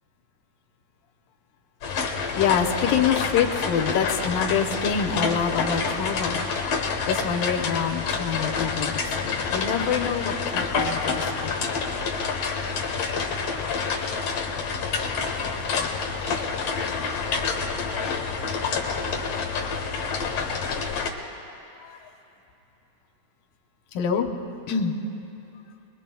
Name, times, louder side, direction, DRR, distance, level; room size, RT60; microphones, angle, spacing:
sound 1, 1.8-21.1, left 5 dB, 55° left, 1.9 m, -28 dB
voice 1, 2.2-6.4 7.1-11.8 14.5-15.5 21.2-21.3 21.7-22.1 23.9-24.3 24.7-25.0, left 7 dB, 80° left, 4 dB, 2.6 m, -26 dB
26.0 x 21.5 x 2.3 m, 2.9 s
omnidirectional pair, 4.1 m